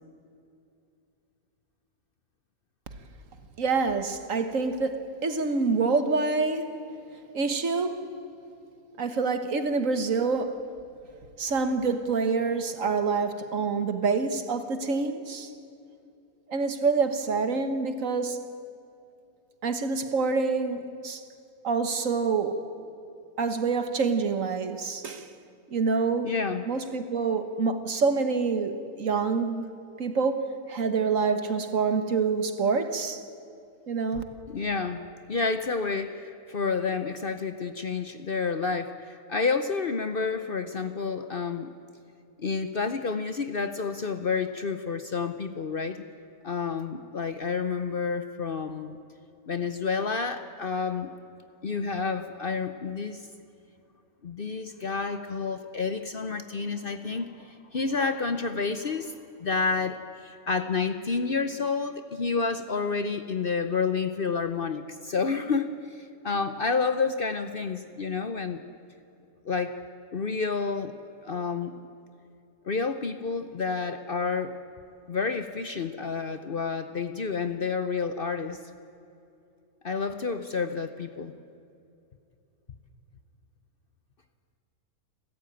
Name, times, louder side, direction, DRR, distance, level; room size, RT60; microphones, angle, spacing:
voice 1, 3.6-6.7 7.3-8.0 9.0-10.6 11.4-15.5 16.5-18.4 19.6-21.2 21.6-22.6 23.4-25.3 25.7-26.3 26.7-29.7 30.0-33.2 33.9-34.2, right 4 dB, 60° right, 1.7 m, -26 dB
voice 2, 26.2-26.6 34.5-41.7 42.4-46.0 46.4-49.0 49.5-51.1 51.6-53.2 54.2-59.1 59.4-68.6 69.4-69.7 70.1-70.9 71.2-71.8 72.6-74.5 75.1-78.6 79.8-81.3, left 4 dB, 45° left, 0.9 m, -29 dB
29.5 x 13.5 x 9.0 m
omnidirectional pair, 1.5 m